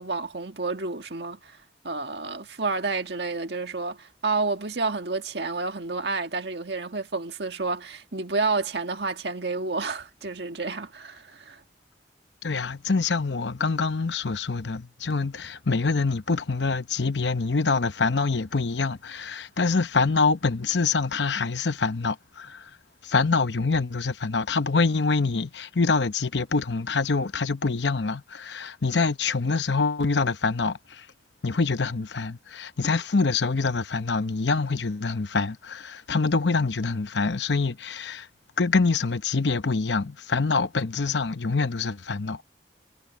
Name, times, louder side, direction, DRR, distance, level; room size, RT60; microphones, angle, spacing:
voice 1, 0.0-1.6 1.8-11.6, right 3 dB, 65° right, 1.7 m, -30 dB
voice 2, 12.4-22.6 23.0-30.8 31.4-38.3 38.6-42.4, left 4 dB, 80° left, 0.9 m, -25 dB
head